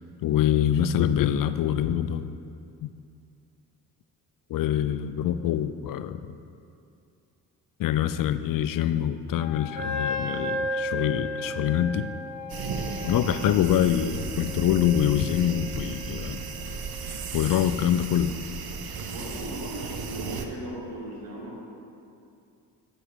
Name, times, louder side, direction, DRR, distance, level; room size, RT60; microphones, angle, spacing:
voice 1, 0.2-2.4 2.8-2.9 4.5-6.4 7.8-12.1 13.0-16.5 17.0-18.4, left 10 dB, 50° left, 12 dB, 0.4 m, -25 dB
Wind instrument woodwind instrument, 9.4-13.9, left 14 dB, 80° left, 0.7 m, -44 dB
Wind instrument woodwind instrument 2, 9.8-17.1, left 1 dB, 20° right, 1.4 m, -35 dB
sound 1, 12.5-20.5, right 5 dB, 50° right, 0.9 m, -35 dB
voice 2, 13.0-13.4 19.0-21.6, equal, 85° right, -2 dB, 1.6 m, -38 dB
9.6 x 4.9 x 5.1 m, 2.5 s
hypercardioid pair, 45°, 46 cm